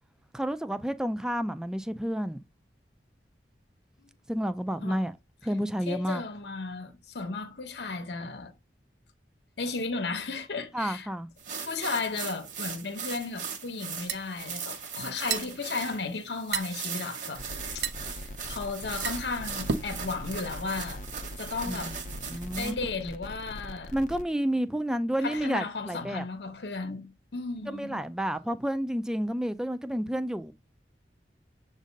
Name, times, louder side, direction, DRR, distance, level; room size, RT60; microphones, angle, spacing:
voice 1, 0.3-2.4 4.3-5.2 5.4-6.2 10.7-11.3 21.7-21.9 22.3-22.7 23.0-23.2 23.9-26.2 27.7-30.5, equal, 5° right, 0.3 m, -30 dB
voice 2, 5.9-8.5 9.6-11.1 11.6-17.4 17.7-21.0 21.4-22.0 22.3-23.9 25.2-28.0, left 4 dB, 70° left, 0.9 m, -35 dB
sound 1, 11.4-22.7, right 6 dB, 45° right, 1.2 m, -39 dB
sound 2, 13.7-20.1, right 6 dB, 75° right, 0.6 m, -35 dB
sound 3, 17.4-24.2, left 1 dB, 45° left, 0.5 m, -42 dB
7.3 x 2.7 x 5.0 m
head